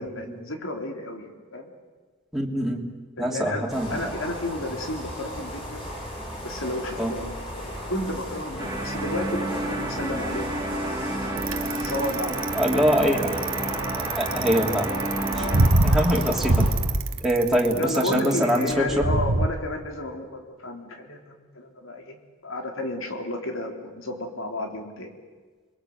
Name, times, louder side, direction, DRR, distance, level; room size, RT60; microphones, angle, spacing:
voice 1, 0.0-1.7 3.2-5.9 6.4-11.0 11.3-12.8 15.3-15.7 17.8-22.2 22.4-25.1, left 1 dB, 80° left, 3 dB, 3.8 m, -32 dB
voice 2, 2.3-2.9 3.2-4.1 7.0-7.1 12.5-13.4 14.2-15.0 15.3-15.5 15.8-16.7 17.2-18.9, equal, ahead, -2 dB, 3.0 m, -23 dB
sound 1, 3.7-16.7, equal, 25° left, 6.1 m, -35 dB
sound 2, 8.6-15.7, right 1 dB, 20° right, 1.8 m, -31 dB
Bicycle, 11.4-19.5, right 2 dB, 80° right, 1.4 m, -24 dB
29.0 x 22.5 x 8.1 m, 1.4 s
head